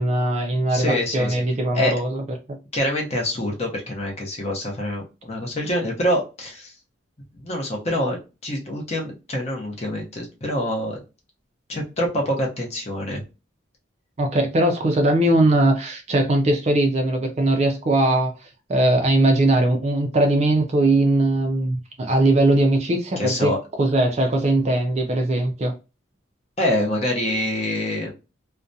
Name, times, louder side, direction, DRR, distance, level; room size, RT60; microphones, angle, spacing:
voice 1, 0.0-2.2 14.2-25.7, right 1 dB, 35° right, 0.4 m, -20 dB
voice 2, 0.7-1.4 1.7-1.9 2.7-6.7 7.3-11.0 11.7-13.2 23.2-23.6 26.6-28.1, left 1 dB, 30° left, 0.7 m, -25 dB
2.4 x 2.1 x 2.6 m
head